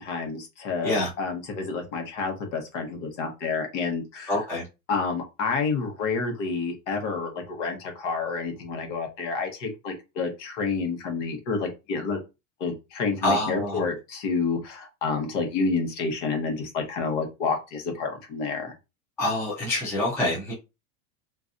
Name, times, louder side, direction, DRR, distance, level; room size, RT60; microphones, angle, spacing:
voice 1, 0.0-4.4 4.9-12.2 12.6-18.7, left 4 dB, 60° left, 1.3 m, -29 dB
voice 2, 4.3-4.6 13.2-13.9 19.2-20.5, left 1 dB, 5° left, 0.5 m, -26 dB
3.8 x 2.6 x 2.6 m
supercardioid pair, 175°, 41 cm